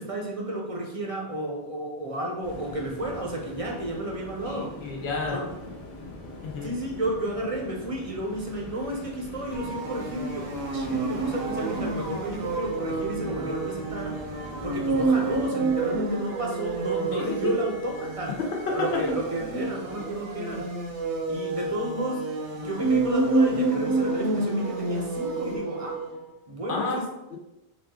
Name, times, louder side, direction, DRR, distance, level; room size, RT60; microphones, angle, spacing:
voice 1, 0.0-4.8 5.3-5.5 6.6-18.4 18.7-20.7 21.3-26.0 26.5-27.1, right 1 dB, 40° right, -1 dB, 0.5 m, -32 dB
sound 1, 2.4-15.5, left 1 dB, 85° left, 1.4 m, -42 dB
voice 2, 4.4-5.4 6.4-6.7 17.1-17.5 26.7-27.0 27.3-27.4, left 4 dB, 65° left, -2 dB, 1.1 m, -31 dB
sound 2, 9.5-26.1, right 3 dB, 80° right, 1.1 m, -29 dB
4.1 x 2.4 x 3.6 m, 0.97 s
omnidirectional pair, 1.2 m